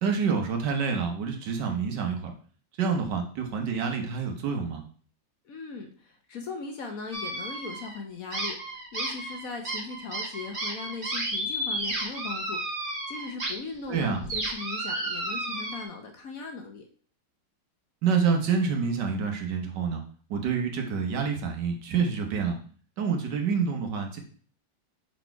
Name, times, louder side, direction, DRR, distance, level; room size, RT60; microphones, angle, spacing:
voice 1, 0.0-2.3 2.8-4.8 13.9-14.2 18.0-20.0 20.3-22.6 23.0-24.2, right 6 dB, 70° right, 4 dB, 1.7 m, -27 dB
voice 2, 5.5-16.9, left 4 dB, 60° left, 4 dB, 1.1 m, -39 dB
sound 1, 7.1-8.0 8.3-13.5 13.8-15.8, right 1 dB, 30° right, 1.5 m, -32 dB
5.9 x 4.2 x 4.5 m, 0.43 s
omnidirectional pair, 2.0 m